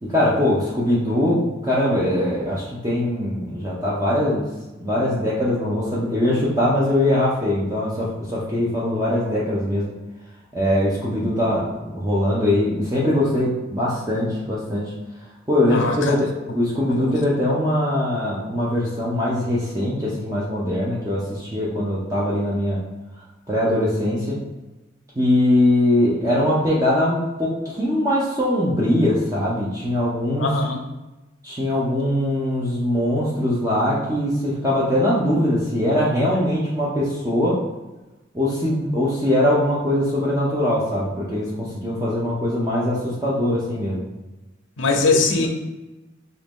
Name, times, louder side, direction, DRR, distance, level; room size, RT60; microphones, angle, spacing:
voice 1, 0.0-4.5 4.8-9.9 10.5-14.9 15.5-22.8 23.5-24.4 25.2-30.6 31.4-37.6 38.3-44.0, left 1 dB, 20° right, -7 dB, 0.5 m, -21 dB
voice 2, 15.7-16.2 16.9-17.1 30.4-30.8 44.8-45.5, left 3 dB, 85° left, 3 dB, 0.6 m, -21 dB
2.9 x 2.6 x 3.5 m, 1.1 s
head